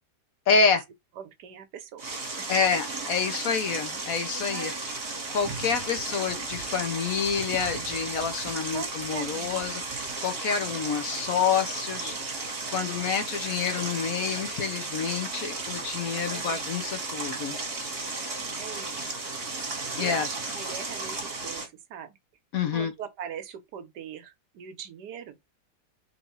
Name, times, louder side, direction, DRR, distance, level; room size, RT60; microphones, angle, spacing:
voice 1, 0.5-0.8 2.5-4.7 5.3-12.1 12.7-17.6 20.0-20.3 22.5-22.9, left 6 dB, 60° left, 1.2 m, -28 dB
voice 2, 1.2-2.1 2.4-2.5 3.3-3.4 4.3-4.8 5.7-6.1 8.7-9.7 12.0-12.3 16.3-16.8 17.3-17.6 18.5-19.0 20.0-22.2 22.7-25.4, right 8 dB, 75° right, 1.3 m, -41 dB
sound 1, 2.0-21.7, right 3 dB, 35° right, 1.7 m, -34 dB
3.9 x 2.6 x 4.6 m
omnidirectional pair, 1.8 m